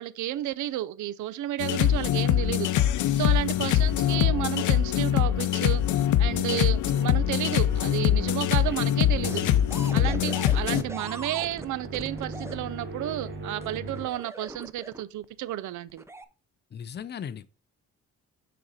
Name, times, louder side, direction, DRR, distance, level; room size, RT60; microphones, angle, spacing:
voice 1, 0.0-2.7 3.1-9.4 9.9-16.0, right 13 dB, 75° right, 0.6 m, -32 dB
sound 1, 1.6-10.8, left 11 dB, 80° left, 0.6 m, -23 dB
voice 2, 3.6-3.9 16.7-17.5, left 8 dB, 35° left, 0.6 m, -38 dB
sound 2, 3.9-14.1, right 2 dB, 40° right, 1.7 m, -41 dB
sound 3, 9.2-12.6 13.6-15.2 15.9-16.2, right 2 dB, 10° right, 0.6 m, -41 dB
6.6 x 4.3 x 5.0 m
cardioid pair, 90°, 30 cm